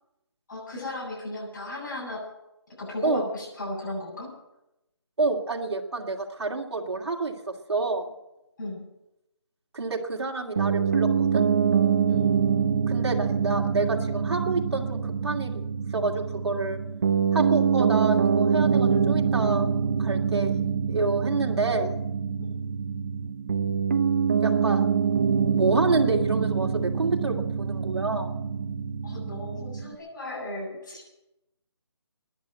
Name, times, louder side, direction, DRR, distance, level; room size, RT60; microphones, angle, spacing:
voice 1, 0.5-2.2 2.8-4.3 8.6-8.8 12.1-12.3 22.4-22.5 29.0-31.1, left 2 dB, 40° left, -4 dB, 7.9 m, -35 dB
voice 2, 5.2-8.1 9.7-11.4 12.9-15.6 15.9-16.8 17.3-19.7 20.0-20.6 20.9-22.0 24.4-24.9 25.4-28.4, right 3 dB, 65° right, 0 dB, 2.6 m, -28 dB
Piano, 10.6-30.0, right 6 dB, 30° right, 0.6 m, -25 dB
14.5 x 10.5 x 9.2 m, 0.90 s
figure-of-eight pair, 170°, 15 cm